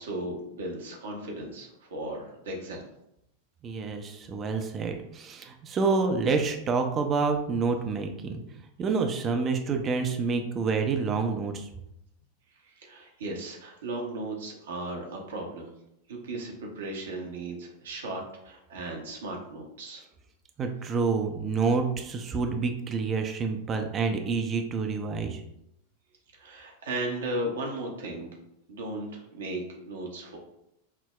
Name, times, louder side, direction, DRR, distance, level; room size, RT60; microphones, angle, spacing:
voice 1, 0.0-2.9 12.7-15.7 16.1-20.0 26.3-28.3 28.7-30.4, right 2 dB, 65° right, 0 dB, 0.7 m, -36 dB
voice 2, 3.6-8.4 8.8-11.7 20.6-25.4, right 4 dB, 25° right, 5 dB, 0.4 m, -28 dB
5.6 x 2.0 x 2.3 m, 0.80 s
figure-of-eight pair, 90°, 0 cm